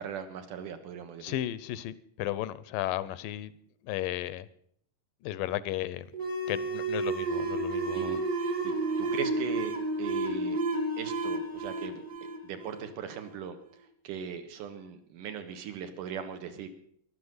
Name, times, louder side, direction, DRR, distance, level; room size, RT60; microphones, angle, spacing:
voice 1, 0.0-1.4 7.9-8.2 8.6-10.6 11.0-12.0 12.4-13.6 14.0-16.7, right 7 dB, 70° right, 2.9 m, -39 dB
voice 2, 1.2-3.5 3.8-4.5 5.2-6.1 6.5-8.2, left 14 dB, 80° left, 2.3 m, -34 dB
sound 1, 6.1-13.3, right 2 dB, 15° left, 0.7 m, -31 dB
13.5 x 11.5 x 8.0 m
omnidirectional pair, 4.0 m